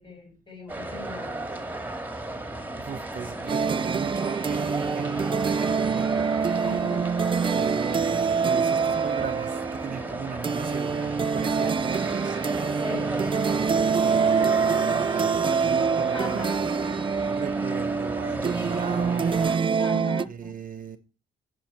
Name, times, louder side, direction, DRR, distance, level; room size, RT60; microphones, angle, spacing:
voice 1, 0.0-1.4 6.6-7.1 12.8-13.2 15.8-16.8 19.8-20.5, left 3 dB, 20° left, 5.8 m, -40 dB
sound 1, 0.7-19.6, right 1 dB, 10° right, 1.8 m, -34 dB
voice 2, 2.8-6.5 7.5-12.4 13.0-16.4 16.9-19.5 20.3-21.0, right 7 dB, 45° right, 0.9 m, -37 dB
sound 2, 3.5-20.3, right 5 dB, 25° right, 0.4 m, -25 dB
9.1 x 6.8 x 6.5 m
cardioid pair, 90°, 20 cm